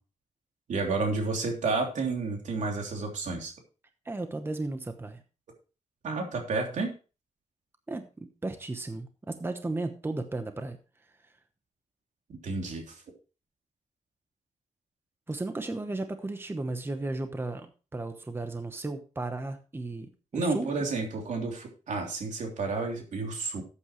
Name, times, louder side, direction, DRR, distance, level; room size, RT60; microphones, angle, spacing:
voice 1, 0.7-3.5 6.0-6.9 12.4-13.0 20.3-23.6, right 3 dB, 80° right, 2 dB, 3.2 m, -31 dB
voice 2, 4.0-5.2 7.9-10.8 15.3-20.7, right 2 dB, 20° right, 7 dB, 1.0 m, -35 dB
13.5 x 8.6 x 3.1 m, 0.34 s
wide cardioid pair, 130°, 12 cm